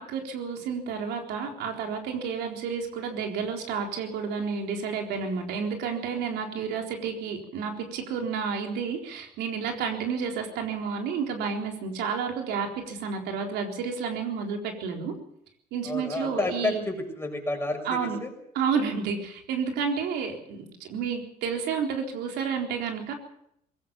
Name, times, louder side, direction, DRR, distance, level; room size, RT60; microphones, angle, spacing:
voice 1, 0.0-15.1 15.7-16.8 17.8-18.2 18.5-23.1, right 6 dB, 85° right, 3 dB, 4.1 m, -30 dB
voice 2, 15.9-18.3, left 2 dB, 15° left, 3 dB, 6.4 m, -30 dB
21.0 x 18.0 x 7.0 m, 0.72 s
cardioid pair, 110°, 17 cm